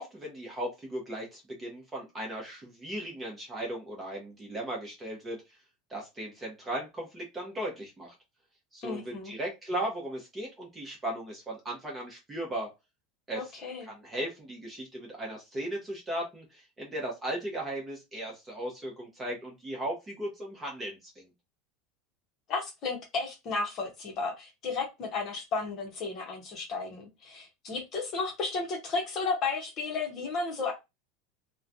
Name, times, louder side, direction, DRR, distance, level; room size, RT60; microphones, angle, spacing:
voice 1, 0.0-5.4 5.9-8.1 8.7-12.7 13.3-21.3, right 1 dB, 15° right, -1 dB, 0.8 m, -37 dB
voice 2, 8.8-9.3 13.4-13.9 22.5-30.7, left 4 dB, 35° left, 2 dB, 0.8 m, -33 dB
3.1 x 2.2 x 2.5 m, 0.23 s
supercardioid pair, 165°, 0 cm